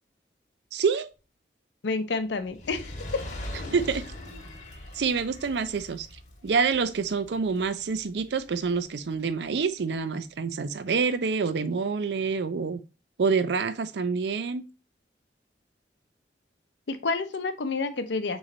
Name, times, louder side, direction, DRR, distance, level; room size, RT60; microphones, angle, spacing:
voice 1, 0.7-1.1 3.7-4.0 4.9-6.1 6.4-12.8 13.2-14.6, right 5 dB, 70° right, 0.4 m, -27 dB
voice 2, 1.8-3.2 16.9-18.4, left 3 dB, 75° left, 0.6 m, -29 dB
Fire, 2.4-8.9 9.5-9.6, left 1 dB, 40° left, 1.0 m, -41 dB
4.1 x 3.1 x 3.7 m
head